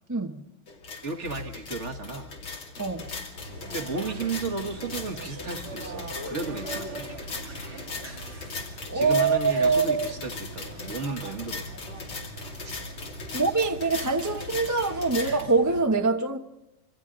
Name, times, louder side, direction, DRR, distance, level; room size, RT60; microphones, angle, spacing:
sound 1, 0.7-15.4, left 4 dB, 80° left, 3.4 m, -39 dB
voice 1, 1.0-2.3 3.7-7.1 8.9-11.6, right 4 dB, 40° right, 1.5 m, -34 dB
sound 2, 3.3-15.8, right 2 dB, 85° right, 4.5 m, -41 dB
voice 2, 8.9-10.1 13.3-16.4, right 4 dB, 15° right, 0.7 m, -24 dB
27.0 x 25.5 x 3.9 m
omnidirectional pair, 2.2 m